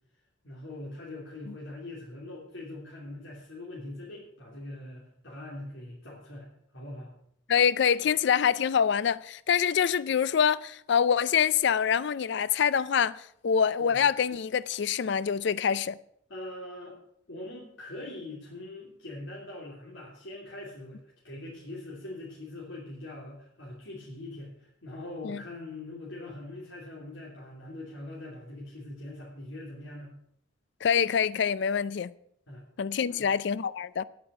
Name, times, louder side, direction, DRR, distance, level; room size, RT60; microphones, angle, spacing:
voice 1, 0.4-6.5 6.7-7.1 13.8-14.0 16.3-17.0 17.3-30.1 32.5-32.6 33.1-33.3, left 1 dB, 75° left, 3.1 m, -42 dB
voice 2, 7.5-16.0 25.2-25.4 30.8-32.1 32.8-34.0, left 7 dB, 60° left, 0.4 m, -25 dB
9.8 x 8.5 x 8.0 m
head